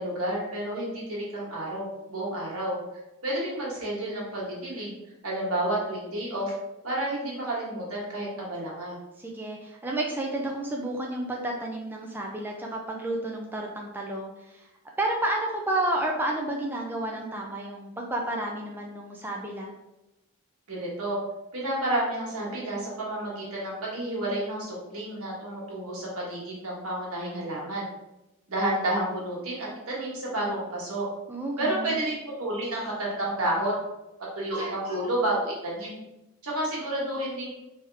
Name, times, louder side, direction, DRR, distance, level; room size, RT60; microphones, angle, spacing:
voice 1, 0.0-2.8 3.2-4.9 5.2-6.5 6.8-9.0 20.7-21.2 21.5-27.9 28.5-31.0 31.6-33.7 34.3-36.0 36.4-37.5, right 1 dB, 80° right, -4 dB, 1.5 m, -30 dB
voice 2, 9.2-14.7 15.0-19.7 31.3-32.0, right 1 dB, 10° right, -1 dB, 0.4 m, -31 dB
3.5 x 2.8 x 3.4 m, 0.96 s
head